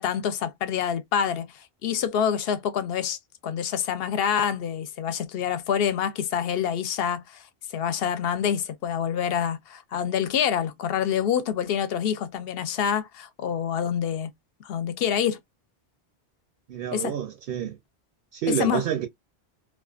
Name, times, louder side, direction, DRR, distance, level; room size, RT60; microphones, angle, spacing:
voice 1, 0.0-3.2 3.4-7.4 7.7-14.3 14.6-15.4 16.9-17.1 18.5-18.8, left 8 dB, 70° left, 0.7 m, -26 dB
voice 2, 16.7-17.8 18.3-19.1, right 9 dB, 65° right, 0.7 m, -28 dB
2.4 x 2.3 x 2.4 m
omnidirectional pair, 1.1 m